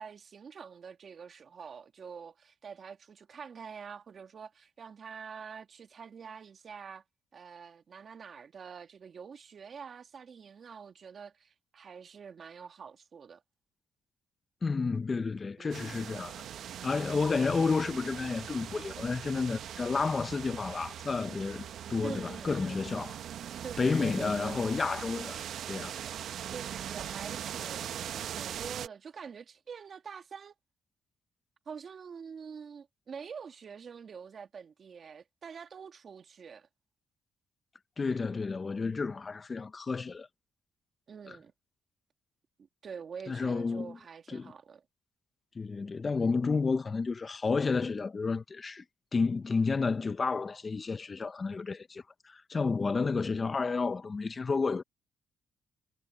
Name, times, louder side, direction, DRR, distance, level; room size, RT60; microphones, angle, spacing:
voice 1, 0.0-7.0 7.3-13.4 15.6-16.1 22.0-22.8 23.6-24.6 26.5-30.5 31.7-36.7 41.1-41.5 42.8-44.8, right 6 dB, 50° right, 2.0 m, -46 dB
voice 2, 14.6-16.3 16.8-23.2 23.8-25.9 38.0-40.3 41.3-41.4 43.3-44.0 44.3-44.5 45.6-48.8 49.1-54.8, left 4 dB, 30° left, 0.7 m, -31 dB
sound 1, 15.7-28.9, right 10 dB, 70° right, 1.0 m, -41 dB
cardioid pair, 90°, 0 cm